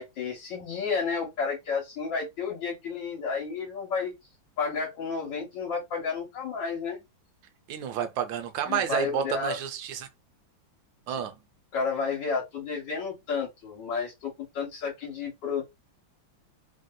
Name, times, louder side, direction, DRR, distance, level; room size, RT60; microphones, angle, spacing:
voice 1, 0.0-4.1 4.6-7.0 8.7-9.6 11.1-11.2 11.7-15.6, left 5 dB, 70° left, 1.6 m, -31 dB
voice 2, 7.7-10.1 11.1-11.3, right 8 dB, 80° right, 1.3 m, -30 dB
3.4 x 2.6 x 2.2 m
omnidirectional pair, 2.1 m